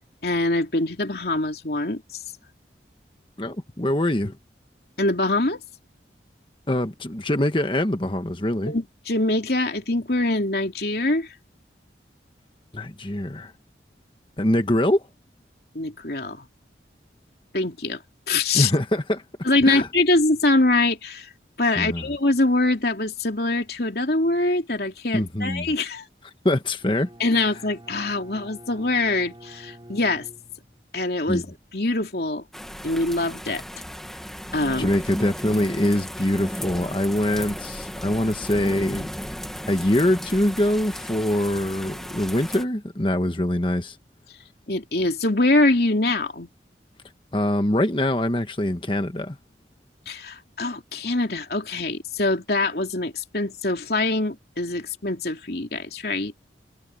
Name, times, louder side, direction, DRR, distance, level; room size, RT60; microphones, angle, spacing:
voice 1, 0.2-2.2 5.0-5.6 8.7-11.4 15.7-16.5 17.5-18.7 19.4-21.3 21.6-26.1 27.2-30.3 30.9-31.4 31.7-32.5 32.8-33.6 34.5-34.9 44.3-44.4 44.7-46.5 50.0-56.3, left 2 dB, 60° left, 3.2 m, -24 dB
voice 2, 3.4-4.4 6.7-8.7 12.7-13.5 14.4-15.1 18.5-19.2 19.7-19.9 21.8-22.0 25.1-25.7 26.4-27.1 31.3-31.4 34.8-39.1 39.7-43.9 47.3-49.4, left 1 dB, 30° left, 1.4 m, -23 dB
Bowed string instrument, 26.8-31.0, equal, 25° right, 6.2 m, -47 dB
sound 1, 32.5-42.6, equal, ahead, 1.6 m, -35 dB
head